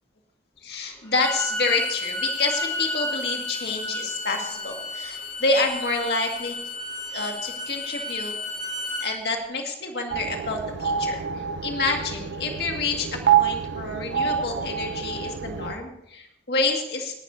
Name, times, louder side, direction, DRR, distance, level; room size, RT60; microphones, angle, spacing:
voice 1, 0.6-6.6 7.1-8.3 9.0-17.2, left 3 dB, 60° left, 2 dB, 2.0 m, -28 dB
Bowed string instrument, 1.0-9.1, left 2 dB, 20° left, 3.8 m, -32 dB
sound 1, 10.1-15.7, right 8 dB, 80° right, 0.6 m, -27 dB
18.0 x 12.0 x 2.7 m, 0.81 s
head